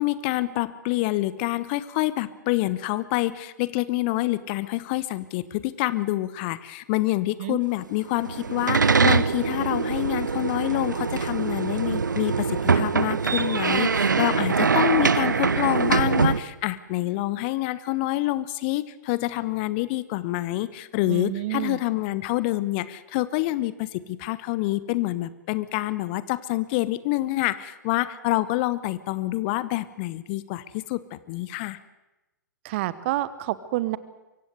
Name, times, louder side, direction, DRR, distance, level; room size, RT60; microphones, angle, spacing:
voice 1, 0.0-31.8, left 17 dB, 35° left, 17 dB, 0.8 m, -27 dB
sound 1, 8.1-16.4, right 5 dB, 75° right, 0.8 m, -23 dB
voice 2, 21.1-21.8 32.6-34.0, right 16 dB, 40° right, 17 dB, 1.0 m, -28 dB
24.0 x 15.5 x 8.1 m, 1.0 s
figure-of-eight pair, 115°, 10 cm